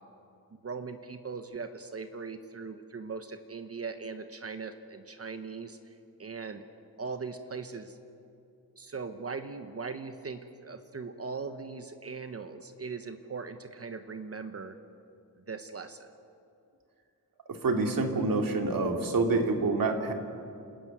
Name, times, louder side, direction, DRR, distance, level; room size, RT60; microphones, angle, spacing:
voice 1, 0.6-5.9 6.2-6.6 7.0-8.0 8.8-14.8 15.5-16.1, right 4 dB, 40° right, 8 dB, 1.1 m, -40 dB
voice 2, 17.5-20.1, right 3 dB, 65° right, 4 dB, 2.5 m, -27 dB
28.5 x 13.5 x 9.2 m, 2.6 s
wide cardioid pair, 120°, 37 cm